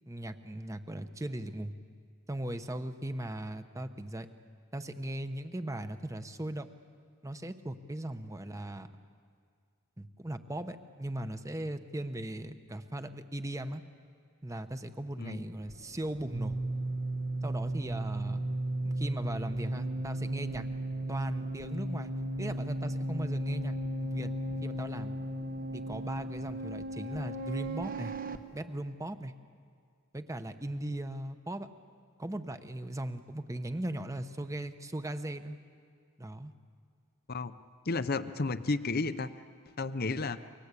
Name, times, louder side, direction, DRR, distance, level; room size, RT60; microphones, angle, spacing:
voice 1, 0.1-1.7 2.3-4.3 4.7-6.7 7.2-8.9 10.0-13.8 14.4-16.6 17.4-18.4 18.8-20.7 21.1-22.1 22.4-24.3 24.6-25.2 25.7-28.1 28.5-29.3 30.1-31.7 32.2-35.6 36.2-36.5, right 1 dB, 15° right, 9 dB, 1.0 m, -38 dB
sound 1, 15.5-28.4, right 1 dB, 40° right, 1.1 m, -35 dB
voice 2, 37.9-39.3 39.8-40.4, left 3 dB, 45° left, 12 dB, 0.7 m, -32 dB
29.0 x 23.5 x 8.4 m, 2.1 s
head